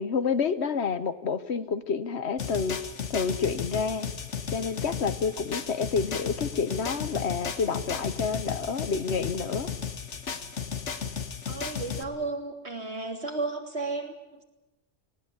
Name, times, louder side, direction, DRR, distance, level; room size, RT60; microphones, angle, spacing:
voice 1, 0.0-2.8 3.1-4.1 4.5-9.7, left 5 dB, 70° left, 12 dB, 1.3 m, -29 dB
sound 1, 2.4-12.0, left 6 dB, 90° left, 1.7 m, -34 dB
voice 2, 11.5-14.4, right 3 dB, 65° right, 2 dB, 3.3 m, -33 dB
19.0 x 19.0 x 9.8 m, 1.0 s
omnidirectional pair, 1.2 m